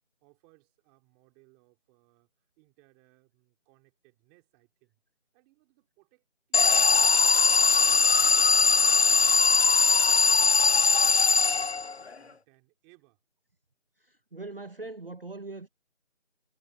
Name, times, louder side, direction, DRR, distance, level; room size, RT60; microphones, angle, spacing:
voice 1, 0.2-5.0 5.3-7.7 8.0-13.2, right 22 dB, 5° right, 3.3 m, -64 dB
Alarm, 6.5-12.1, left 4 dB, 55° left, 0.5 m, -21 dB
voice 2, 14.3-15.7, right 3 dB, 45° right, 0.9 m, -40 dB
figure-of-eight pair, 175°, 38 cm